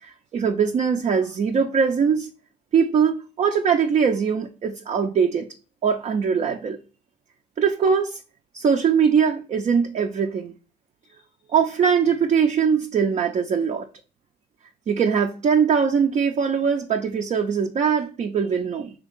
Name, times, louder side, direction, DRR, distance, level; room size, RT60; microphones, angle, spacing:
voice 1, 0.0-2.3 2.7-5.5 5.8-6.8 7.6-8.2 8.5-10.5 11.5-13.9 14.9-18.9, right 6 dB, 40° right, 0.5 m, -21 dB
3.5 x 2.9 x 3.7 m
cardioid pair, 110°, 17 cm